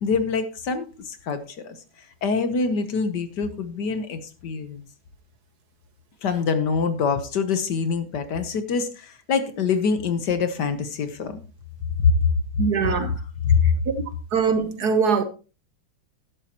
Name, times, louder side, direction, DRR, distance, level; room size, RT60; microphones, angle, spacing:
voice 1, 0.0-1.8 2.2-4.8 6.2-11.4 12.0-12.2 12.9-13.1 13.4-13.7, left 5 dB, 60° left, 1.5 m, -24 dB
voice 2, 12.6-13.2 13.6-13.7 14.3-15.2, right 5 dB, 55° right, 1.4 m, -22 dB
12.0 x 11.5 x 2.9 m
omnidirectional pair, 2.2 m